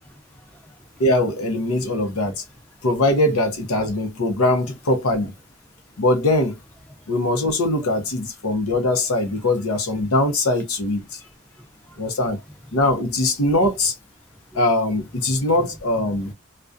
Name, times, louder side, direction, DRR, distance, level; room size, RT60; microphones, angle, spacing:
voice 1, 0.0-0.9 11.1-12.1 14.5-14.6 15.3-15.4 16.3-16.4, equal, 10° left, 0.5 m, -49 dB
voice 2, 1.0-2.4 2.8-5.3 6.0-6.6 7.1-11.2 12.0-12.4 12.7-14.0 14.5-16.3, left 1 dB, 90° left, 0.7 m, -21 dB
2.3 x 2.1 x 2.5 m
head